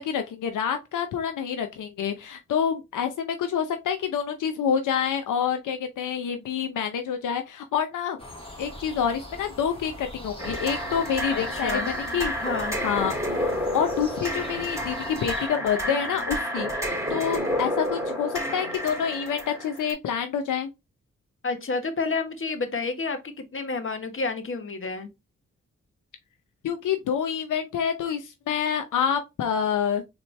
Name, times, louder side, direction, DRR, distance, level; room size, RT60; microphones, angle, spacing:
voice 1, 0.0-8.2 8.6-12.3 12.8-13.1 13.7-20.7 26.6-30.0, left 7 dB, 80° left, 0.6 m, -27 dB
sound 1, 8.2-15.5, left 1 dB, 15° left, 1.8 m, -42 dB
sound 2, 10.4-19.9, equal, 10° right, 2.3 m, -30 dB
voice 2, 11.3-11.9 12.4-12.8 21.4-23.2 23.5-25.1, left 4 dB, 40° left, 1.2 m, -29 dB
3.9 x 3.1 x 3.2 m
supercardioid pair, 40°, 31 cm